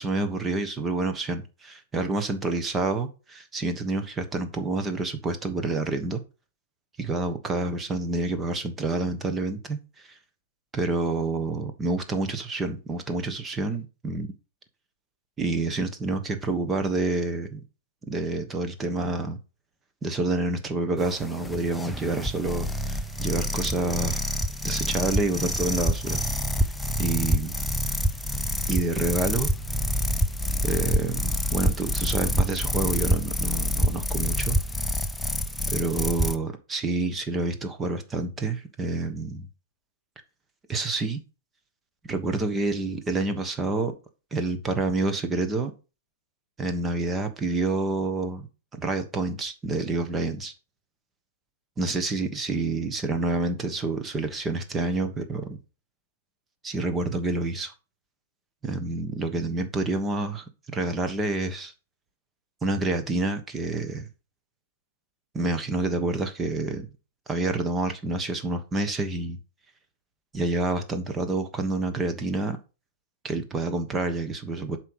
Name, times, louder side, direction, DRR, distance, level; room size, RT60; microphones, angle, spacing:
voice 1, 0.0-6.2 7.0-10.2 10.7-14.3 15.4-17.6 18.1-19.4 20.0-24.2 24.6-26.2 27.0-27.5 28.7-29.5 30.6-34.6 35.7-39.5 40.7-41.2 42.1-43.9 44.3-45.7 46.6-48.5 48.7-50.5 51.8-55.6 56.6-57.7 58.6-61.7 62.6-64.1 65.3-66.9 67.3-69.4 70.3-72.6 73.2-74.8, right 2 dB, 15° right, 1.2 m, -28 dB
sound 1, 21.0-36.4, equal, 5° left, 0.6 m, -27 dB
7.6 x 4.6 x 6.4 m
hypercardioid pair, 150°, 0 cm